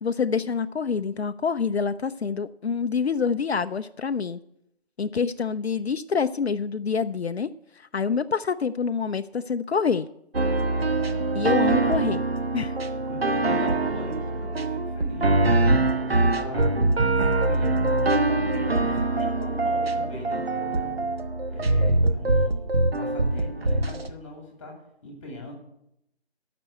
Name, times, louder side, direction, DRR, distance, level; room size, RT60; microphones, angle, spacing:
voice 1, 0.0-4.4 5.0-7.5 7.8-10.1 11.3-12.2 12.5-12.7, left 6 dB, 70° left, 10 dB, 0.5 m, -26 dB
sound 1, 10.3-24.1, right 2 dB, 65° right, 1.1 m, -23 dB
voice 2, 13.0-16.7 17.2-21.0 21.5-22.6 23.0-25.5, left 2 dB, 10° left, 1 dB, 2.0 m, -40 dB
12.0 x 6.1 x 7.9 m, 0.79 s
figure-of-eight pair, 165°, 33 cm